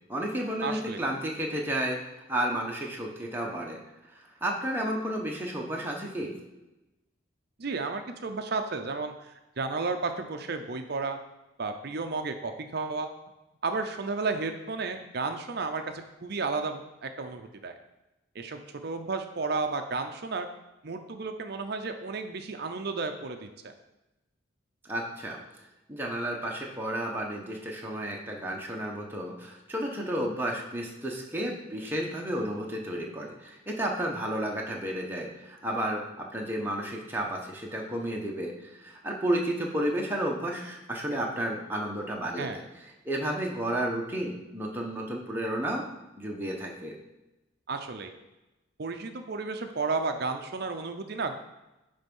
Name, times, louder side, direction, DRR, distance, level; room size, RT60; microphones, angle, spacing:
voice 1, 0.1-3.8 4.1-6.3 24.8-25.4 25.9-42.6 43.0-45.8 46.2-46.9, right 1 dB, 10° right, -1 dB, 1.0 m, -32 dB
voice 2, 0.6-1.0 7.6-11.2 11.6-13.1 13.6-17.7 18.3-20.5 20.8-23.7 42.4-42.6 47.7-48.1 48.8-51.4, right 4 dB, 50° right, 7 dB, 0.6 m, -33 dB
9.6 x 3.5 x 5.4 m, 0.99 s
head